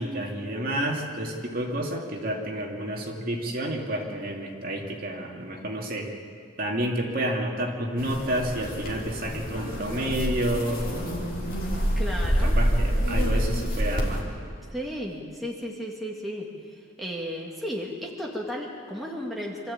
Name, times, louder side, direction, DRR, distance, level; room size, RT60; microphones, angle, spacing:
voice 1, 0.0-6.1 6.6-11.3 12.4-14.3, right 1 dB, 45° right, 0 dB, 2.5 m, -30 dB
sound 1, 8.0-14.2, equal, 45° left, 3.4 m, -27 dB
voice 2, 12.0-12.6 14.7-16.5 17.0-19.7, equal, ahead, -2 dB, 2.0 m, -34 dB
25.0 x 14.0 x 8.8 m, 2.3 s
head